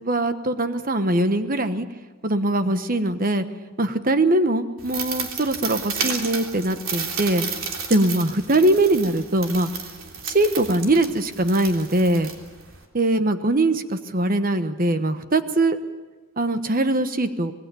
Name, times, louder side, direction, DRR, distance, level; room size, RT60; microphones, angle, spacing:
voice 1, 0.0-1.9 2.2-3.4 3.8-7.5 7.9-9.7 10.3-12.3 12.9-15.8 16.4-17.5, right 1 dB, 45° right, 9 dB, 1.3 m, -21 dB
sound 1, 4.8-12.8, right 5 dB, 70° right, 3.4 m, -32 dB
25.5 x 20.0 x 7.1 m, 1.3 s
head